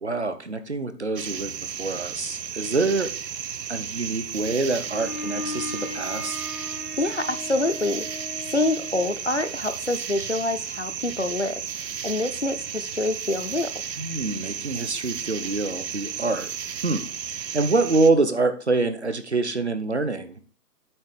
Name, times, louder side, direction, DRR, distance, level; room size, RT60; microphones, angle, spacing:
voice 1, 0.0-1.5 1.8-3.1 3.7-6.4 14.0-16.5 16.8-17.1 17.5-20.4, right 3 dB, 45° right, 10 dB, 0.7 m, -25 dB
sound 1, 1.2-18.1, right 8 dB, 85° right, 0.8 m, -34 dB
Bowed string instrument, 4.8-9.3, left 2 dB, ahead, 0.6 m, -37 dB
voice 2, 7.0-8.0 8.5-13.7, left 2 dB, 45° left, 8 dB, 0.5 m, -26 dB
8.8 x 3.5 x 6.6 m, 0.39 s
hypercardioid pair, 175°, 49 cm